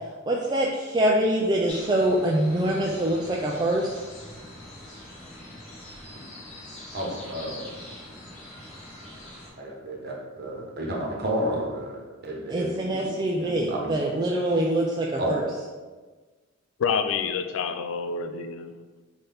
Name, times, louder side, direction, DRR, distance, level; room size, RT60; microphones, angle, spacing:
voice 1, 0.3-4.0 12.5-15.4, right 1 dB, 20° right, -2 dB, 0.3 m, -24 dB
sound 1, 1.7-9.5, left 1 dB, 35° left, 1.2 m, -43 dB
voice 2, 6.9-7.8 9.6-13.1 13.4-13.9 15.2-15.3, right 1 dB, 50° right, -1 dB, 0.9 m, -31 dB
voice 3, 16.8-18.8, left 6 dB, 70° left, 8 dB, 0.3 m, -28 dB
5.6 x 2.7 x 3.4 m, 1.3 s
head